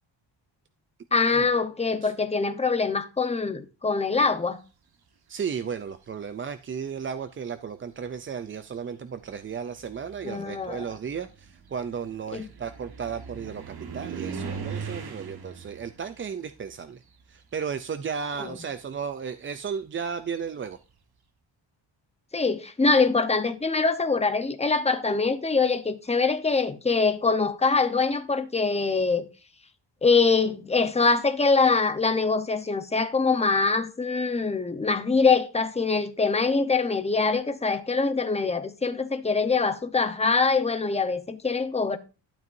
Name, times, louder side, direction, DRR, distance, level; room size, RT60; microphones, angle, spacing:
voice 1, 1.1-4.6 10.2-10.8 12.3-12.5 18.4-18.5 22.3-29.2 30.0-42.0, left 4 dB, 15° left, 0.9 m, -24 dB
voice 2, 5.3-17.0 17.3-20.8, right 6 dB, 30° right, 0.4 m, -34 dB
sound 1, 5.7-6.3 7.3-7.4 7.9-17.9 18.1-20.8, right 6 dB, 55° right, 1.4 m, -41 dB
12.0 x 7.9 x 2.6 m
wide cardioid pair, 125°, 45 cm